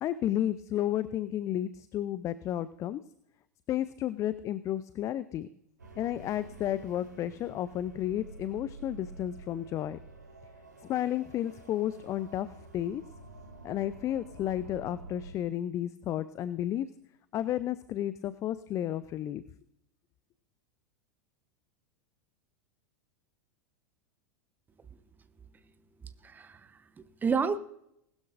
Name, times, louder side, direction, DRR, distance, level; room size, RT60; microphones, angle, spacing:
voice 1, 0.0-3.0 3.7-5.5 6.0-10.0 10.9-13.0 13.6-16.9 17.3-19.4, left 12 dB, 35° left, 15 dB, 0.5 m, -32 dB
sound 1, 5.8-15.3, right 2 dB, 80° right, 2.4 m, -49 dB
voice 2, 26.2-27.6, right 5 dB, 20° right, 12 dB, 1.0 m, -31 dB
20.0 x 12.5 x 2.6 m, 0.75 s
figure-of-eight pair, 85°, 9 cm